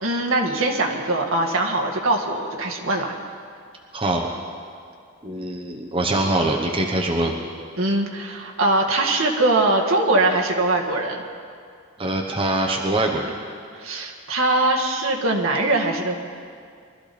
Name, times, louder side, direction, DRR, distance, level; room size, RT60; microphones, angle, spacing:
voice 1, 0.0-3.1 7.8-11.2 13.8-16.1, right 2 dB, 70° right, 0 dB, 1.8 m, -22 dB
voice 2, 3.9-4.3 5.2-7.4 12.0-13.3, right 2 dB, 25° right, 1 dB, 1.0 m, -23 dB
23.5 x 13.5 x 4.3 m, 2.2 s
head